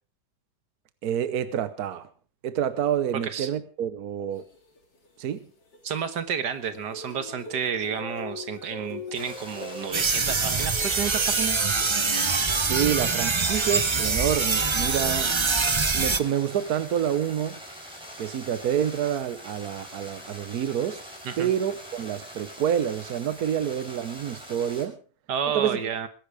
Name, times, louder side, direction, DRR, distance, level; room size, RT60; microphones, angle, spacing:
voice 1, 1.0-2.1 2.4-4.4 5.2-5.4 12.5-15.3 15.9-17.6 18.2-21.0 21.4-25.0 25.5-25.8, right 9 dB, 65° right, 13 dB, 1.4 m, -28 dB
sound 1, 4.3-6.2 6.5-12.2, left 4 dB, 85° left, 3.5 m, -43 dB
voice 2, 5.8-11.7 12.7-12.9 21.3-21.5 25.3-26.1, right 7 dB, 85° right, 11 dB, 2.0 m, -31 dB
sound 2, 9.1-24.8, equal, 5° right, 5.3 m, -43 dB
sound 3, 9.9-16.2, right 4 dB, 30° right, 0.5 m, -24 dB
21.0 x 11.0 x 5.0 m, 0.39 s
omnidirectional pair, 1.8 m